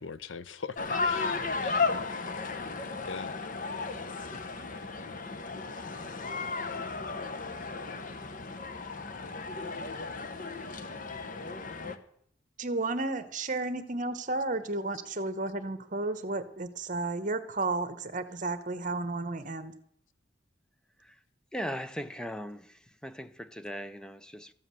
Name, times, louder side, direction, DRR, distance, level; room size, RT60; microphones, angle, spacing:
voice 1, 0.0-1.4 1.6-2.0 3.1-3.3, left 5 dB, 85° left, 0.7 m, -41 dB
sound 1, 0.8-12.0, left 4 dB, 45° left, 1.0 m, -34 dB
voice 2, 12.6-19.7, right 2 dB, 40° right, 1.1 m, -32 dB
voice 3, 21.5-22.7 23.0-24.5, equal, 5° left, 0.5 m, -38 dB
14.0 x 7.7 x 7.6 m
head